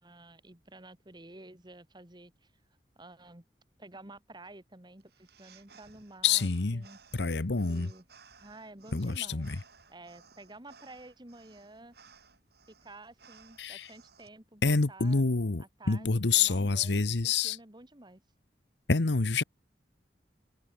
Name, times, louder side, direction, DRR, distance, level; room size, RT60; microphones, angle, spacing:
voice 1, 0.0-2.5 3.0-3.4 3.8-7.0 7.7-8.1 8.4-9.5 9.9-11.9 12.8-15.2 15.6-18.2, right 2 dB, 25° right, 2.3 m, -51 dB
sound 1, 5.0-14.3, right 5 dB, 60° right, 3.3 m, -59 dB
voice 2, 6.2-6.8 7.1-7.9 8.9-9.6 13.6-13.9 14.6-17.6 18.9-19.4, left 4 dB, 80° left, 1.0 m, -27 dB
open air
head